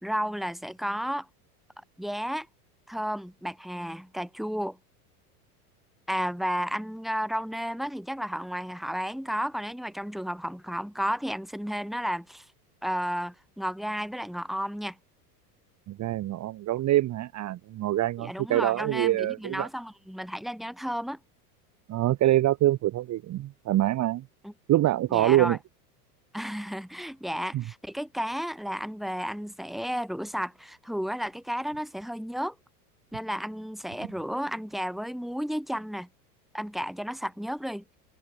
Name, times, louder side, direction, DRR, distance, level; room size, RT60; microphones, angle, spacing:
voice 1, 0.0-1.3 2.0-2.5 2.9-4.8 6.1-12.4 12.8-15.0 18.2-21.2 24.4-24.5 25.1-25.6 26.3-32.5 33.1-36.1 36.5-37.8, equal, ahead, 3.3 m, -32 dB
voice 2, 15.9-19.7 21.9-24.2 24.7-25.6 27.5-27.6, right 14 dB, 35° right, 1.4 m, -25 dB
hypercardioid pair, 100°, 47 cm